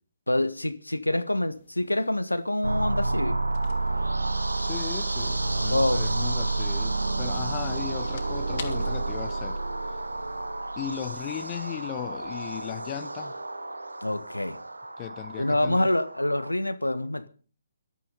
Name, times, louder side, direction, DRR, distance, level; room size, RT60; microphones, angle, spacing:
voice 1, 0.3-3.4 5.7-6.0 14.0-14.6 15.4-17.3, left 1 dB, 80° left, 1.3 m, -26 dB
sound 1, 1.5-10.5, left 7 dB, 40° left, 2.8 m, -50 dB
sound 2, 2.6-16.5, right 2 dB, 75° right, 1.2 m, -30 dB
voice 2, 4.6-9.6 10.8-13.4 15.0-15.9, left 12 dB, 25° left, 1.0 m, -37 dB
19.0 x 12.5 x 5.4 m
figure-of-eight pair, 135°, 0 cm